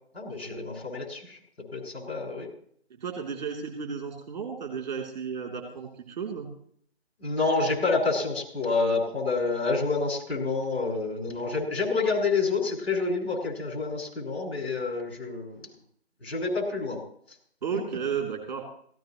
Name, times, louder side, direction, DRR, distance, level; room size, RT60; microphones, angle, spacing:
voice 1, 0.1-1.4 1.7-2.5 7.2-15.7 16.2-17.0, left 4 dB, 70° left, -1 dB, 6.8 m, -28 dB
voice 2, 3.0-6.5 17.6-18.6, right 6 dB, 40° right, 1 dB, 3.2 m, -33 dB
17.0 x 17.0 x 3.1 m, 0.62 s
figure-of-eight pair, 155°, 33 cm